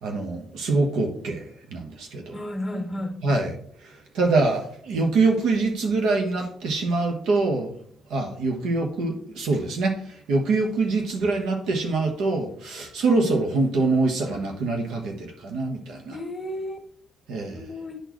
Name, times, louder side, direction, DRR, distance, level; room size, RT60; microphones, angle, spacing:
voice 1, 0.0-2.4 3.2-3.5 4.1-7.7 8.1-10.0 10.3-16.2 17.3-17.6, right 3 dB, 85° right, 1.2 m, -24 dB
voice 2, 2.3-3.2 16.1-16.8 17.5-18.0, left 1 dB, 5° left, 1.8 m, -32 dB
9.8 x 4.1 x 3.1 m
cardioid pair, 90°, 0 cm